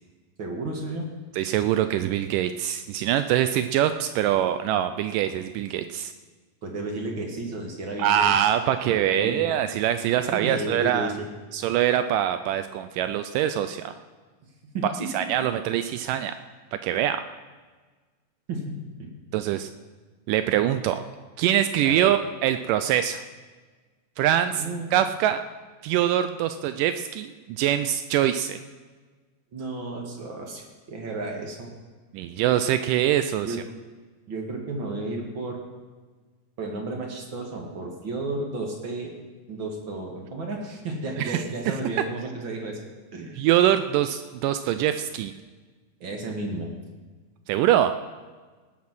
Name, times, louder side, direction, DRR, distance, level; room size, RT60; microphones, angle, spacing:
voice 1, 0.4-1.1 6.6-8.5 9.1-9.4 10.3-11.3 14.7-15.5 18.5-19.1 21.8-22.1 24.6-24.9 29.5-31.7 33.4-33.6 34.3-35.6 36.6-39.1 39.5-42.8 43.1-43.4 46.0-46.7, right 2 dB, 50° right, 1 dB, 1.6 m, -33 dB
voice 2, 1.3-6.1 8.0-11.1 11.5-13.9 14.8-16.4 16.7-17.3 19.3-19.7 20.3-21.0 21.4-23.2 24.2-24.6 24.9-25.4 25.8-28.6 32.1-33.6 41.2-41.7 43.4-45.3 47.5-47.9, right 11 dB, 85° right, 10 dB, 1.9 m, -24 dB
19.0 x 7.4 x 6.1 m, 1.4 s
omnidirectional pair, 4.3 m